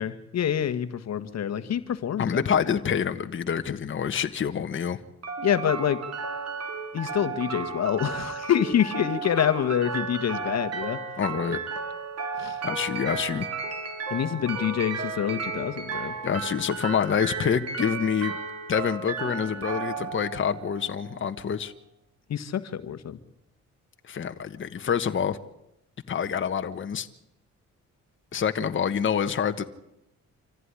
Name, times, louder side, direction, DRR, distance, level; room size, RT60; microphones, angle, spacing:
voice 1, 0.0-2.4 2.8-3.0 5.4-6.0 6.9-11.0 12.4-12.6 14.1-16.1 22.3-23.2 28.3-28.4, left 9 dB, 60° left, 10 dB, 1.5 m, -26 dB
voice 2, 2.2-5.0 11.2-11.6 12.6-13.5 16.2-18.3 18.7-21.7 24.1-25.4 26.1-27.1 28.3-29.6, left 7 dB, 40° left, 7 dB, 1.4 m, -27 dB
sound 1, 5.2-21.2, right 5 dB, 55° right, 4.7 m, -34 dB
26.5 x 15.0 x 9.9 m, 0.85 s
cardioid pair, 90°, 30 cm